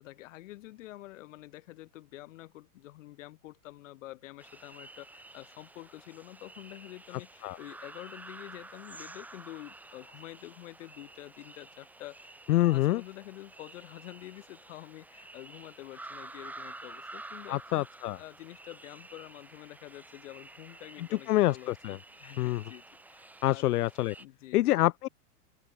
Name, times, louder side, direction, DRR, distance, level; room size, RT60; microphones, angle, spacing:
voice 1, 0.0-17.9 18.2-23.7 24.2-24.8, left 16 dB, 55° left, 6.0 m, -48 dB
sound 1, 4.4-24.3, right 2 dB, 5° right, 2.6 m, -50 dB
voice 2, 12.5-13.0 17.5-18.2 21.3-22.0 22.4-22.6 23.4-24.1 24.5-25.1, left 16 dB, 75° left, 0.9 m, -26 dB
open air
supercardioid pair, 170°, 46 cm